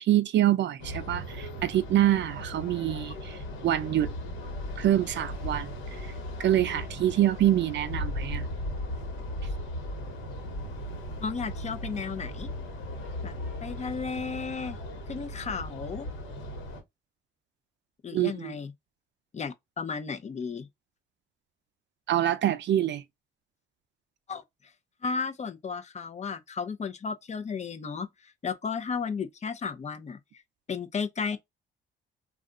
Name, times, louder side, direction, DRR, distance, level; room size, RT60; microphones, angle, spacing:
voice 1, 0.0-4.1 4.8-5.7 6.0-6.1 6.4-8.5 18.1-18.5 22.1-23.0, right 12 dB, 65° right, 0.5 m, -26 dB
sound 1, 0.8-16.8, left 1 dB, 90° left, 1.2 m, -37 dB
voice 2, 11.2-12.5 13.2-13.4 13.6-14.8 15.1-16.1 18.0-18.7 19.3-20.7 24.3-24.7 25.0-30.4 30.7-31.4, left 5 dB, 35° left, 0.6 m, -34 dB
2.4 x 2.2 x 3.7 m
cardioid pair, 90°, 20 cm